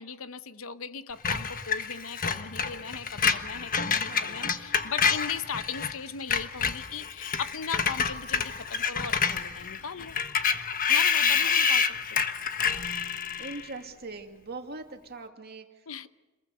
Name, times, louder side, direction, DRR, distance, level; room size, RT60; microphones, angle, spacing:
voice 1, 0.0-10.2 10.9-12.2 15.9-16.1, left 6 dB, 80° left, 13 dB, 0.8 m, -38 dB
Screech, 1.2-5.9 6.2-13.7, left 6 dB, 45° left, 1.3 m, -28 dB
voice 2, 4.0-4.6 11.2-11.7 13.4-16.1, right 3 dB, 50° right, 4 dB, 2.4 m, -42 dB
27.0 x 21.5 x 6.7 m, 1.1 s
head